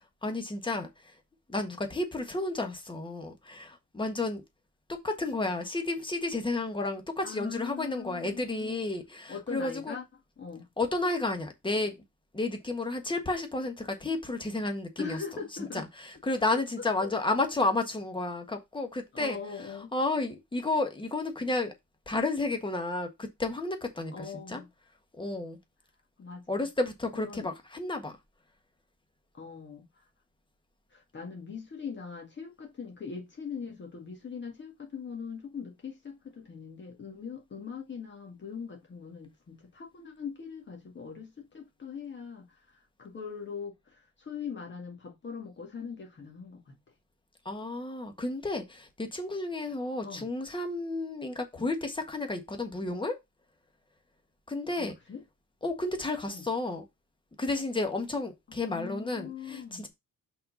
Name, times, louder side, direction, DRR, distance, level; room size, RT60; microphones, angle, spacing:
voice 1, 0.2-0.9 1.5-4.4 5.0-10.0 10.8-12.0 12.3-15.2 15.7-19.4 19.9-21.7 22.1-24.6 25.2-25.6 26.5-28.1 47.4-53.1 54.5-54.9 55.6-56.8 57.4-59.9, left 2 dB, 15° left, 1.4 m, -32 dB
voice 2, 7.2-8.8 9.3-10.0 10.4-10.7 15.0-15.9 16.5-17.1 19.1-19.9 24.1-24.7 26.2-26.7 27.1-27.5 29.3-30.1 30.9-46.7 50.0-50.3 54.8-55.2 56.3-56.4 58.5-59.9, left 6 dB, 35° left, 1.9 m, -41 dB
5.6 x 4.1 x 5.1 m
cardioid pair, 145°, 33 cm